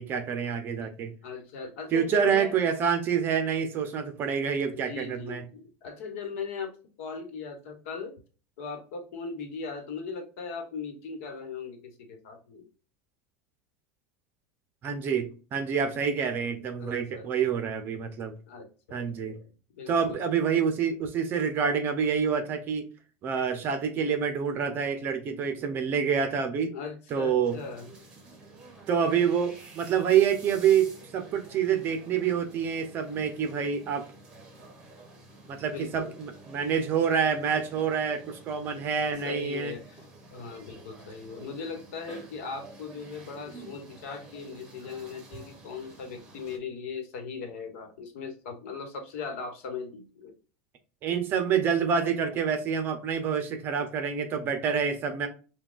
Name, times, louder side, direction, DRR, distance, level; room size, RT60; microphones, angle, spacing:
voice 1, 0.0-1.1 1.9-5.4 14.8-18.3 18.9-19.4 19.9-22.8 23.2-26.7 27.1-27.6 28.9-34.1 35.5-39.7 51.0-55.3, right 7 dB, 30° right, 0.6 m, -27 dB
voice 2, 1.2-2.5 4.7-6.7 7.0-8.1 8.6-12.7 15.8-16.0 16.8-17.6 18.5-20.2 26.7-27.9 35.7-36.2 39.2-50.3, left 5 dB, 70° left, 1.2 m, -39 dB
sound 1, 27.4-46.6, right 2 dB, 10° right, 0.9 m, -50 dB
5.8 x 2.3 x 2.4 m
supercardioid pair, 165°, 8 cm